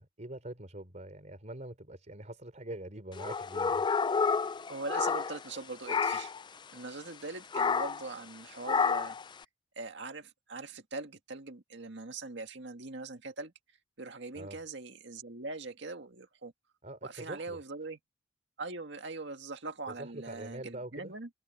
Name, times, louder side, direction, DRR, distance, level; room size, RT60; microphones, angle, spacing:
voice 1, 0.0-3.9 14.3-14.6 16.8-17.6 19.9-21.1, right 1 dB, 40° right, 3.9 m, -44 dB
sound 1, 3.2-5.6 5.9-6.4 7.5-8.1 8.7-9.2, left 5 dB, 25° left, 0.4 m, -30 dB
voice 2, 4.7-6.3 6.7-9.2 9.8-13.5 14.0-16.5 17.0-18.0 18.6-21.3, right 3 dB, 70° right, 2.0 m, -42 dB
head